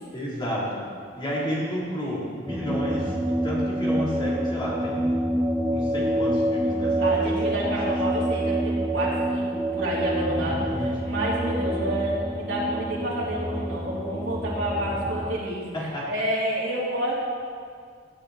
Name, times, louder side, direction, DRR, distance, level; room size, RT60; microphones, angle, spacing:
voice 1, 0.1-0.9 1.1-5.3 5.7-7.2 7.6-7.7 8.9-9.1 10.3-10.9 15.7-16.1, equal, 25° left, -6 dB, 3.5 m, -31 dB
sound 1, 2.5-15.4, right 1 dB, 10° right, 0.5 m, -27 dB
voice 2, 7.0-15.6 16.1-17.1, equal, 70° right, -6 dB, 3.4 m, -29 dB
17.0 x 10.0 x 4.3 m, 2.1 s
head